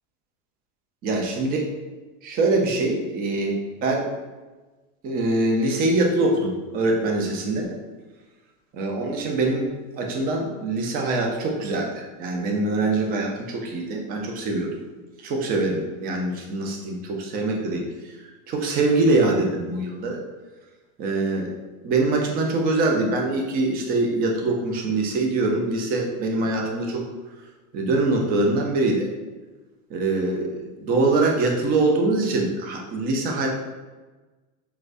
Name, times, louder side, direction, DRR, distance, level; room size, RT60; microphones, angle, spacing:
voice 1, 1.0-1.7 2.2-4.1 5.0-7.8 8.7-9.7 10.0-14.7 15.2-18.2 18.5-20.2 21.0-21.5 21.8-27.0 27.7-29.1 29.9-33.5, right 2 dB, 20° right, 1 dB, 0.3 m, -23 dB
4.7 x 2.2 x 2.5 m, 1.2 s
hypercardioid pair, 110°, 48 cm